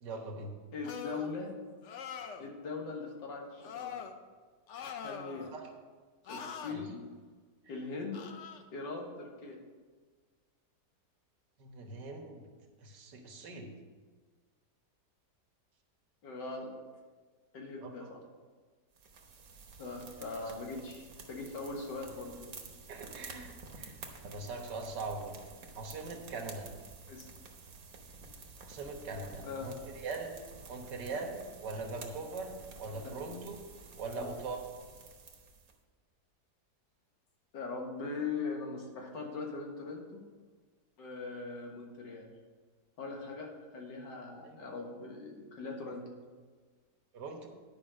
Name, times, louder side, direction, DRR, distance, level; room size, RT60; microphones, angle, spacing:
voice 1, 0.0-0.5 5.5-5.7 6.7-6.8 11.6-12.5 12.8-13.7 17.8-18.1 22.9-24.0 24.2-25.4 25.8-26.7 28.7-30.4 30.7-33.6 34.0-34.6 44.4-44.7 47.1-47.5, right 3 dB, 80° right, 3 dB, 1.8 m, -41 dB
voice 2, 0.7-1.5 2.4-4.1 5.0-5.5 6.3-7.1 7.7-8.2 8.7-9.6 16.2-16.7 17.5-18.2 19.8-22.6 27.1-27.3 29.4-29.7 34.1-34.3 37.5-40.2 41.0-42.3 43.0-46.0, left 4 dB, 90° left, 1 dB, 2.1 m, -40 dB
sound 1, 0.8-1.3 1.8-2.5 3.6-4.1 4.7-5.5 6.2-6.7 8.1-8.6, left 7 dB, 60° left, 0.8 m, -43 dB
sound 2, 18.9-35.8, right 4 dB, 55° right, 1.4 m, -51 dB
10.5 x 5.3 x 6.3 m, 1.4 s
omnidirectional pair, 1.8 m